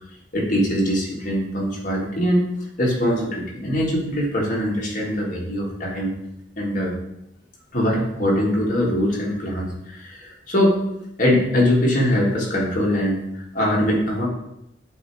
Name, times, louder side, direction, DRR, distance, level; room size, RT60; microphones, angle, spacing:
voice 1, 0.3-2.5 2.8-6.1 6.6-6.9 7.7-10.8 11.2-13.2 13.5-14.3, equal, 45° left, -4 dB, 1.8 m, -22 dB
7.6 x 2.9 x 4.7 m, 0.82 s
head